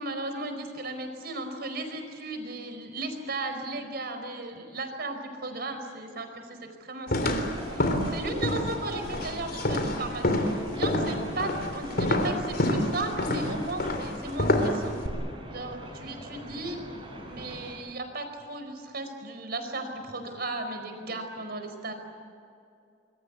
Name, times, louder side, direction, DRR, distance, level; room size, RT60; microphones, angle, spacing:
voice 1, 0.0-15.0 15.5-16.8 17.3-21.9, right 2 dB, 60° right, 7 dB, 4.8 m, -36 dB
sound 1, 7.1-15.1, left 1 dB, 55° left, 3.6 m, -28 dB
sound 2, 7.2-17.8, equal, 25° right, 6.7 m, -43 dB
26.0 x 22.5 x 8.4 m, 2.5 s
head